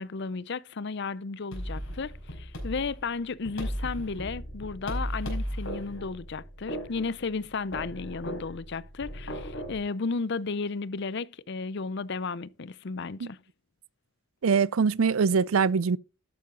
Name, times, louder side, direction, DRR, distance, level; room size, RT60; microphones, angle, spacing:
voice 1, 0.0-13.4, left 4 dB, 55° left, 0.6 m, -34 dB
sound 1, 1.5-9.8, equal, 70° left, 4.9 m, -36 dB
voice 2, 14.4-16.0, right 5 dB, 75° right, 0.5 m, -23 dB
12.5 x 9.5 x 3.8 m
head